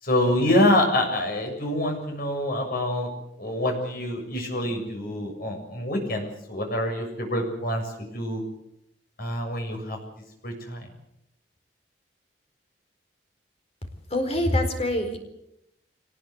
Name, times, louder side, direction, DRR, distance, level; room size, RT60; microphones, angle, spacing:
voice 1, 0.0-3.1 3.4-8.5 9.2-10.0 10.4-10.9, left 1 dB, 55° left, 3 dB, 7.0 m, -26 dB
voice 2, 14.1-15.2, left 1 dB, 35° left, 6 dB, 4.5 m, -24 dB
24.5 x 19.5 x 8.1 m, 0.81 s
head